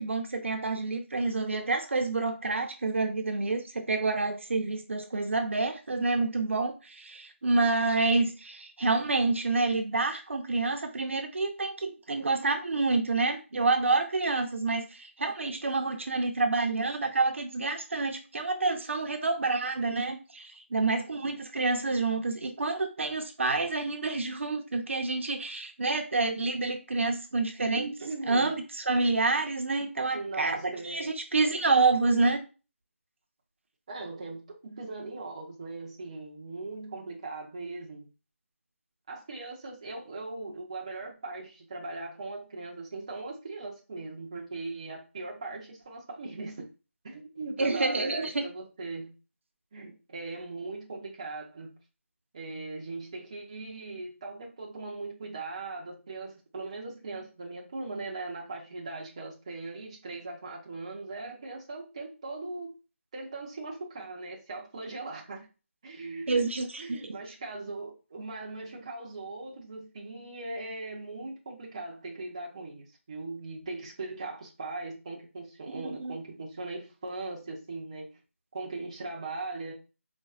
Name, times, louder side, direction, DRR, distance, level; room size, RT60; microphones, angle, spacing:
voice 1, 0.0-27.8 28.3-32.4 47.6-48.4 66.3-67.1 75.7-76.2, right 3 dB, 65° right, 0.6 m, -28 dB
voice 2, 27.7-28.6 30.1-31.1 33.9-38.1 39.1-46.6 47.0-49.1 49.7-51.8 52.3-62.7 63.1-65.5 65.8-66.5 66.8-78.2 78.5-79.7, right 3 dB, 25° right, 0.5 m, -39 dB
4.2 x 2.2 x 2.4 m
figure-of-eight pair, 175°, 7 cm